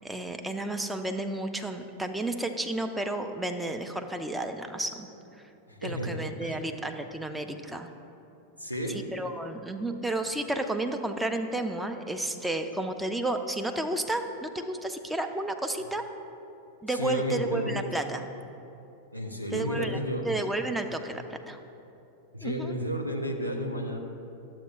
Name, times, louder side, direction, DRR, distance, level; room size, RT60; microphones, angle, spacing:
voice 1, 0.0-5.1 5.8-7.9 8.9-16.0 16.8-18.3 19.5-20.0 20.3-21.6 22.4-22.7, right 2 dB, 5° right, 5 dB, 0.5 m, -32 dB
voice 2, 5.7-6.6 8.6-9.0 16.9-17.8 19.1-20.3 22.3-24.0, equal, 90° right, 2 dB, 0.7 m, -32 dB
11.5 x 7.5 x 2.4 m, 2.8 s
figure-of-eight pair, 90°, 0 cm